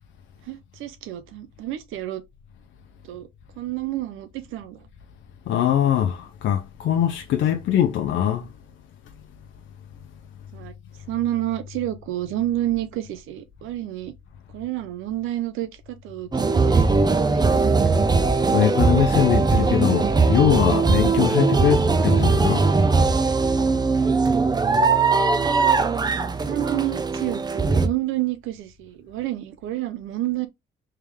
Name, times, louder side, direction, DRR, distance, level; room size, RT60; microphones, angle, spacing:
voice 1, 0.5-2.2 3.0-3.3 3.6-4.9 10.5-10.7 11.1-14.1 14.5-17.7 26.4-30.5, right 14 dB, 90° right, 0.6 m, -29 dB
voice 2, 5.5-8.5 18.5-22.7, left 10 dB, 75° left, 0.6 m, -22 dB
sound 1, 16.3-27.9, right 4 dB, 20° right, 0.5 m, -20 dB
3.4 x 3.3 x 3.3 m
cardioid pair, 90°, 20 cm